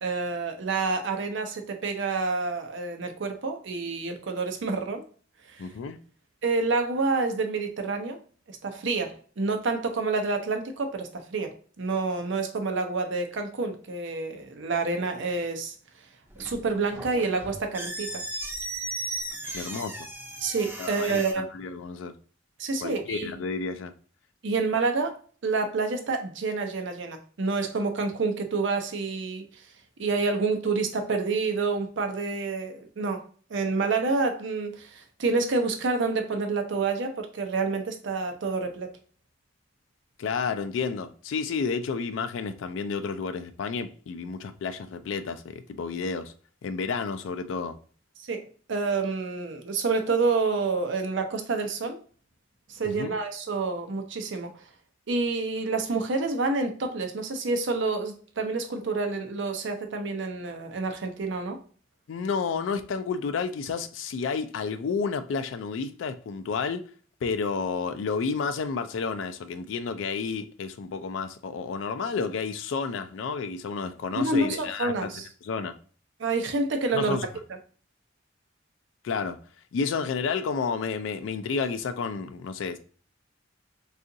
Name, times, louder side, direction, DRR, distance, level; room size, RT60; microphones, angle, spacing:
voice 1, 0.0-5.0 5.5-5.7 6.4-8.2 8.5-15.7 16.4-18.2 19.4-19.6 20.4-21.4 22.6-23.3 24.4-25.2 25.4-29.7 30.0-33.2 33.5-38.9 48.2-52.0 52.7-54.7 55.1-61.6 74.2-75.3 76.2-77.2, right 3 dB, 70° right, 0.6 m, -28 dB
voice 2, 5.6-6.0 19.5-19.9 20.8-21.2 21.5-22.1 22.8-23.9 40.2-46.3 46.6-47.8 52.8-53.1 62.1-66.9 67.2-75.1 75.4-75.7 76.9-77.3 79.0-79.4 79.7-82.8, left 5 dB, 70° left, 0.3 m, -31 dB
sound 1, 16.3-21.3, right 2 dB, 10° right, 0.5 m, -36 dB
3.7 x 2.4 x 2.6 m
head